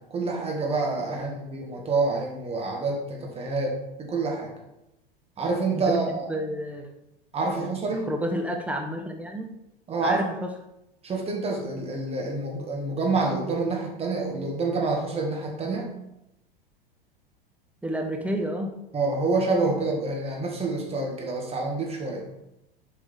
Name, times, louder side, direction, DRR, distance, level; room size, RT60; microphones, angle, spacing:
voice 1, 0.0-4.5 5.4-6.3 7.3-8.1 9.9-10.2 11.0-15.9 18.9-22.3, right 3 dB, 20° right, -1 dB, 1.7 m, -27 dB
voice 2, 6.1-6.9 8.1-9.5 10.0-10.5 17.8-18.7, equal, 5° right, 1 dB, 0.7 m, -30 dB
7.9 x 5.0 x 4.2 m, 0.86 s
figure-of-eight pair, 90°, 29 cm